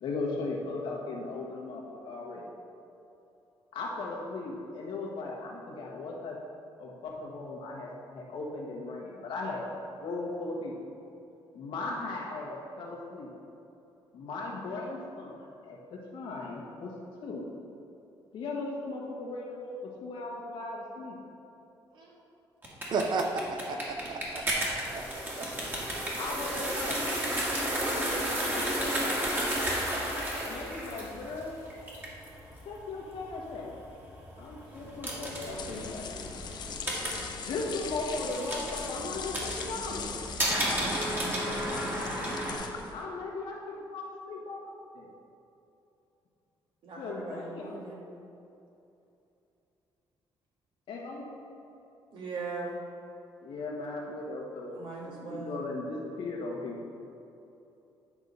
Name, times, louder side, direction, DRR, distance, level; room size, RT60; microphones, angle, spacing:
voice 1, 0.0-2.4 3.7-6.4 6.8-10.7 11.5-13.3 14.1-16.9 17.2-17.5 18.3-21.2 26.2-27.0 27.9-29.3 30.4-31.7 32.6-33.7 34.4-36.1 37.4-40.1 42.9-45.1 47.0-47.8 50.9-51.2 53.4-54.7 55.1-56.8, left 3 dB, 75° left, -3 dB, 1.6 m, -37 dB
sound 1, 22.6-42.5, right 1 dB, 25° right, 1.8 m, -33 dB
voice 2, 22.9-25.7, right 3 dB, 55° right, 5 dB, 0.6 m, -34 dB
sound 2, 35.2-43.1, left 6 dB, 55° left, 0.6 m, -40 dB
voice 3, 46.8-48.1 52.1-52.7 54.7-55.7, right 4 dB, 70° right, -3 dB, 1.9 m, -40 dB
9.8 x 3.7 x 5.4 m, 2.8 s
cardioid pair, 110°, 9 cm